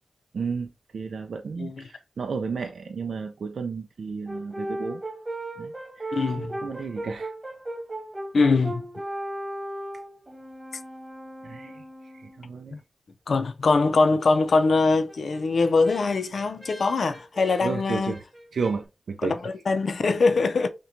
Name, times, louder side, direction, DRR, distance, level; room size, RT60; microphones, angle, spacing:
voice 1, 0.3-5.0 5.6-7.3 11.4-12.8 17.6-18.2 18.5-19.4, right 5 dB, 85° right, 0.3 m, -33 dB
Brass instrument, 4.3-12.6 15.1-18.8, right 1 dB, 30° right, 1.0 m, -37 dB
voice 2, 6.1-6.6 8.3-8.8 12.7-12.8 13.3-18.2 19.2-20.7, left 3 dB, 80° left, 0.4 m, -22 dB
5.6 x 2.2 x 2.5 m
cardioid pair, 45°, 0 cm